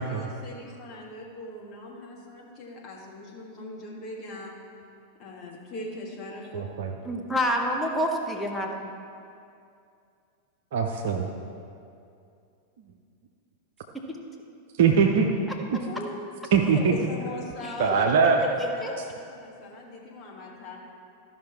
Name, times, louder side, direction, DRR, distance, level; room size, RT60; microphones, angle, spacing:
voice 1, 0.0-4.5 5.2-6.6 15.7-16.1 16.5-20.8, left 2 dB, 35° left, -3 dB, 1.9 m, -40 dB
voice 2, 6.5-6.9 10.7-11.3 14.8-15.3 15.7-15.8 16.5-16.9 17.8-18.4, right 6 dB, 55° right, 2 dB, 0.6 m, -22 dB
voice 3, 7.1-8.9 14.1-14.2 17.6-17.7 18.6-18.9, equal, 5° left, 0 dB, 1.1 m, -28 dB
13.5 x 5.7 x 4.4 m, 2.5 s
figure-of-eight pair, 90°, 0 cm